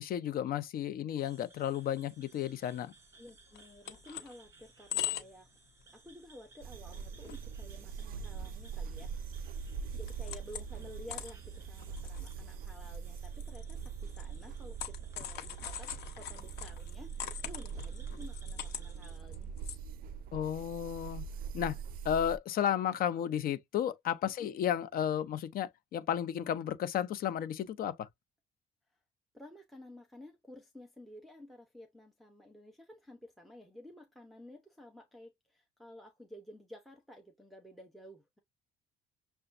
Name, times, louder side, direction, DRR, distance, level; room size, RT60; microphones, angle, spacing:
voice 1, 0.0-2.9 20.3-21.2 21.5-21.8 22.0-28.1, left 10 dB, 60° left, 0.6 m, -33 dB
sound 1, 1.2-19.2, right 3 dB, 15° right, 1.9 m, -62 dB
voice 2, 3.2-5.5 5.9-9.3 9.9-19.5 24.4-24.5 29.3-38.4, left 1 dB, ahead, 0.8 m, -53 dB
sound 2, 3.3-3.4 3.6-4.3 4.7-5.5 5.8-6.0 6.4-6.5 6.9-7.4 7.7-7.8 8.4-9.4 9.7-10.8 11.1-19.8, left 11 dB, 80° left, 1.0 m, -42 dB
sound 3, 6.6-22.4, right 6 dB, 60° right, 0.4 m, -42 dB
6.7 x 2.3 x 2.5 m
cardioid pair, 110°, 17 cm